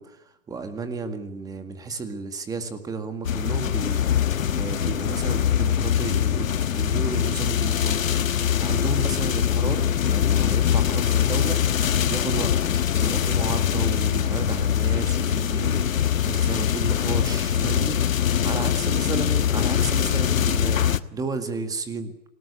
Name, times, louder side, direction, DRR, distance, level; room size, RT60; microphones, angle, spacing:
voice 1, 0.0-22.3, right 4 dB, 10° right, 8 dB, 2.0 m, -33 dB
sound 1, 3.2-21.0, left 9 dB, 90° left, 1.4 m, -23 dB
26.5 x 18.5 x 8.5 m, 0.88 s
hypercardioid pair, 155°, 39 cm